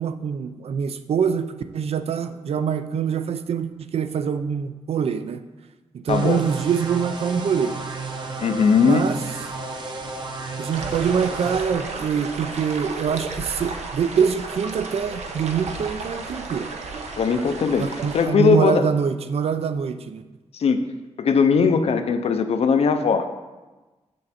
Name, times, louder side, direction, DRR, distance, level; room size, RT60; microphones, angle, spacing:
voice 1, 0.0-5.4 6.0-7.7 8.8-9.2 10.6-16.7 17.8-20.2, right 7 dB, 60° right, 10 dB, 0.5 m, -24 dB
voice 2, 6.1-6.4 8.4-9.1 17.2-18.8 20.5-20.9 21.2-23.3, left 5 dB, 65° left, 9 dB, 0.6 m, -19 dB
sound 1, 6.1-11.6, right 3 dB, 40° right, 0.9 m, -33 dB
sound 2, 10.7-18.3, right 3 dB, 80° right, 0.9 m, -33 dB
7.7 x 6.5 x 4.2 m, 1.2 s
wide cardioid pair, 150°, 11 cm